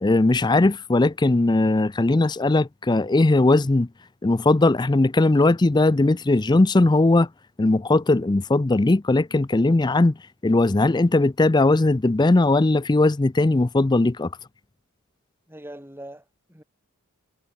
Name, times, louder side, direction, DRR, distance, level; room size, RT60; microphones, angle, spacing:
voice 1, 0.0-3.9 4.2-7.3 7.6-10.2 10.4-14.3, left 2 dB, 20° left, 0.4 m, -19 dB
voice 2, 15.5-16.6, right 1 dB, 10° right, 7.5 m, -42 dB
head